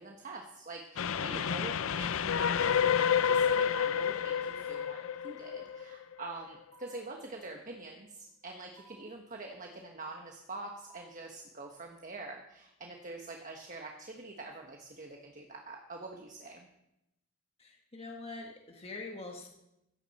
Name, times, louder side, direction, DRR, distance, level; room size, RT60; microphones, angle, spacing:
voice 1, 0.0-16.7, right 2 dB, 40° right, 2 dB, 1.3 m, -45 dB
Train, 1.0-6.2, left 7 dB, 85° left, 0.5 m, -29 dB
sound 1, 4.7-5.2 6.7-7.2 8.8-9.2 10.8-11.3, right 6 dB, 60° right, 2.1 m, -58 dB
voice 2, 17.6-19.5, left 3 dB, 30° left, 1 dB, 1.4 m, -44 dB
16.0 x 14.5 x 4.2 m, 0.86 s
head